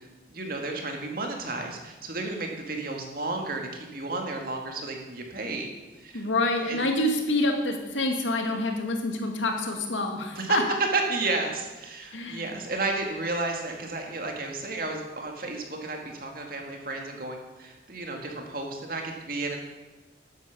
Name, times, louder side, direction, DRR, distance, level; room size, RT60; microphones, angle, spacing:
voice 1, 0.0-5.7 6.0-6.3 6.7-6.8 10.4-10.6 10.9-19.6, right 2 dB, 50° right, 2 dB, 2.1 m, -32 dB
voice 2, 6.1-10.6 12.1-12.5, left 2 dB, 85° left, 3 dB, 2.2 m, -27 dB
12.5 x 9.1 x 7.0 m, 1.2 s
head